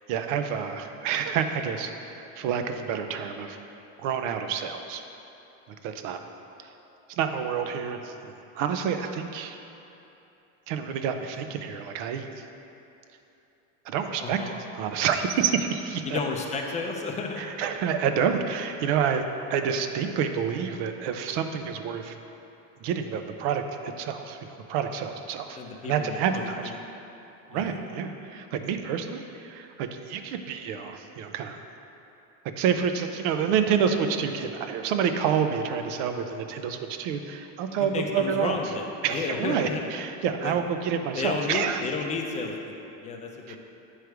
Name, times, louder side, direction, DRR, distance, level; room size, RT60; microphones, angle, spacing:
voice 1, 0.1-3.6 4.0-5.0 5.8-6.2 7.1-9.6 10.7-12.4 13.9-16.2 17.4-22.1 22.8-25.6 25.8-26.7 27.5-31.6 32.6-38.6 39.0-41.8 43.5-43.6, right 7 dB, 70° right, 7 dB, 0.6 m, -28 dB
voice 2, 14.2-14.5 16.1-17.6 25.5-26.8 27.5-27.8 37.8-39.8 40.4-40.5 41.2-43.6, left 4 dB, 20° left, 2 dB, 0.4 m, -32 dB
9.1 x 3.3 x 4.7 m, 2.9 s
cardioid pair, 145°, 38 cm